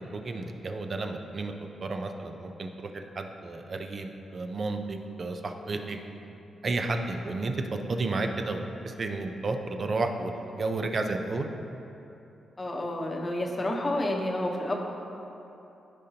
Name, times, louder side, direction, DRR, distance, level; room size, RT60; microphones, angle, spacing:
voice 1, 0.1-1.5 1.8-6.0 6.6-7.6 7.9-11.5, right 3 dB, 40° right, 5 dB, 0.6 m, -32 dB
voice 2, 12.6-14.7, left 1 dB, 25° left, 0 dB, 1.0 m, -29 dB
14.0 x 5.1 x 2.9 m, 2.9 s
cardioid pair, 115°, 0 cm